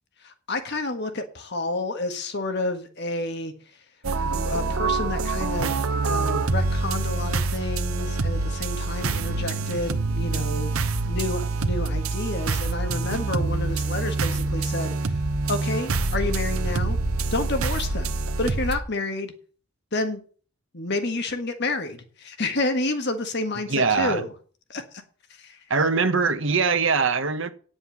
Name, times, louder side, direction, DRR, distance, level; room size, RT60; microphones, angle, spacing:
voice 1, 0.2-3.5 4.2-10.8 11.0-15.2 15.5-17.0 17.3-19.3 19.9-20.2 20.7-24.3 24.7-25.0 25.4-25.6, left 2 dB, 50° left, 1.5 m, -30 dB
sound 1, 4.0-18.8, right 3 dB, 85° right, 1.0 m, -26 dB
voice 2, 23.7-24.2 25.7-27.5, right 5 dB, 60° right, 1.3 m, -22 dB
9.7 x 7.9 x 7.1 m
head